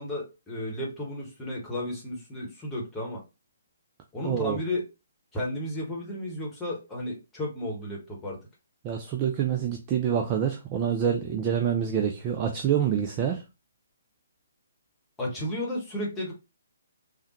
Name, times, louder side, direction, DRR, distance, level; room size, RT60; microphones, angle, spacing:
voice 1, 0.0-3.2 4.1-4.8 5.3-8.4 15.2-16.3, left 1 dB, 10° left, 1.0 m, -33 dB
voice 2, 4.2-4.6 8.8-13.4, right 8 dB, 25° right, 0.4 m, -26 dB
3.4 x 2.2 x 2.8 m
figure-of-eight pair, 135°, 0 cm